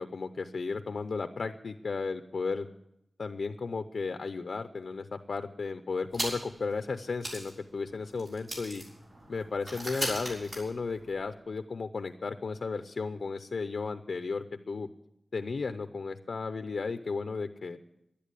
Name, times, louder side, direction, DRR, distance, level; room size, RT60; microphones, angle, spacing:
voice 1, 0.0-2.7 3.2-8.8 9.3-14.9 15.3-17.8, left 4 dB, 80° left, 9 dB, 0.6 m, -34 dB
sound 1, 6.1-6.6 6.9-7.0 7.2-11.3, right 1 dB, 60° right, 6.4 m, -38 dB
11.5 x 10.5 x 9.7 m, 0.82 s
wide cardioid pair, 70°, 0 cm